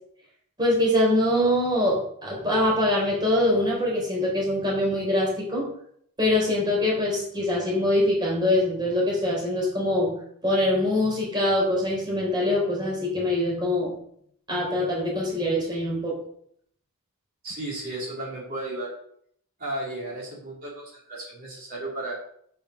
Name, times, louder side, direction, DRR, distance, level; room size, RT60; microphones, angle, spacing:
voice 1, 0.6-5.7 6.2-10.2 10.4-13.9 14.5-16.2, left 1 dB, 20° right, -3 dB, 3.8 m, -23 dB
voice 2, 17.4-18.9 19.6-22.2, right 1 dB, 40° right, -5 dB, 3.6 m, -34 dB
7.9 x 6.7 x 6.5 m, 0.66 s
head